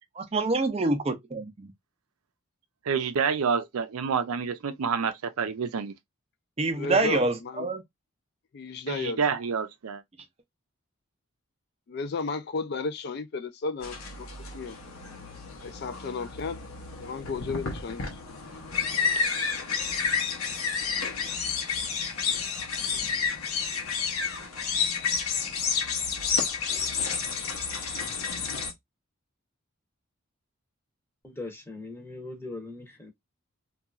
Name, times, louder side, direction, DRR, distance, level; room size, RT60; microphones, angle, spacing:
voice 1, 0.2-1.7 6.6-7.8, right 3 dB, 30° right, 0.4 m, -26 dB
voice 2, 2.9-5.9 8.9-10.0, right 6 dB, 90° right, 0.5 m, -28 dB
voice 3, 6.7-7.7 8.5-9.2 11.9-14.8 15.6-16.6 17.0-18.2, left 4 dB, 50° left, 0.3 m, -34 dB
sound 1, 13.8-28.7, left 6 dB, 90° left, 0.7 m, -30 dB
voice 4, 31.2-33.1, left 2 dB, 10° left, 0.7 m, -40 dB
2.9 x 2.3 x 2.3 m
head